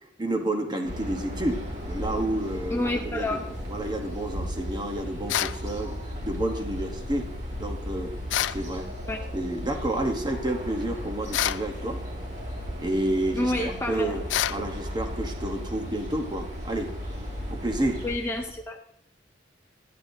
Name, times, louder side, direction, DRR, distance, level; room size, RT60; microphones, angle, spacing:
voice 1, 0.2-3.4 3.7-6.0 6.2-7.3 7.6-8.2 8.5-8.9 9.3-12.0 12.8-16.9 17.5-18.0, right 1 dB, 25° right, 4 dB, 1.0 m, -30 dB
sound 1, 0.8-18.2, equal, 40° right, 2.2 m, -36 dB
sound 2, 1.3-18.6, left 1 dB, 80° right, 3.0 m, -44 dB
voice 2, 2.7-3.4 9.1-9.2 13.4-14.2 18.0-18.8, left 1 dB, 15° left, 3 dB, 0.5 m, -28 dB
sound 3, 5.3-5.6 8.3-8.6 11.3-11.7 14.3-14.6, left 12 dB, 85° left, 0.3 m, -26 dB
11.0 x 9.4 x 2.7 m, 0.74 s
head